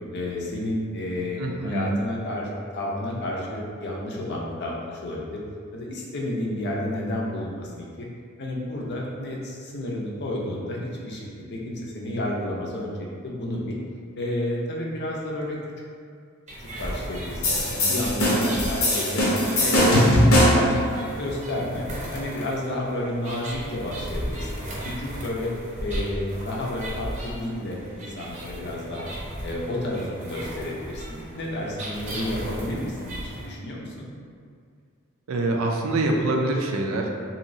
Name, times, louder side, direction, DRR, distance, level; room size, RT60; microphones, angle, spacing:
voice 1, 0.1-2.5 2.7-5.4 5.7-8.1 8.4-12.9 13.2-13.8 14.2-15.6 16.6-19.3 19.6-20.2 20.5-21.9 22.1-24.7 25.0-25.5 25.8-29.1 29.4-34.1, left 1 dB, 55° left, -2 dB, 0.5 m, -31 dB
voice 2, 1.4-1.9 18.3-18.5 35.3-37.1, right 2 dB, 75° right, 1 dB, 0.4 m, -25 dB
sound 1, 16.5-33.5, right 1 dB, 35° right, 0.6 m, -36 dB
sound 2, 17.4-20.7, equal, 85° left, 0.8 m, -20 dB
3.0 x 2.8 x 2.6 m, 2.2 s
head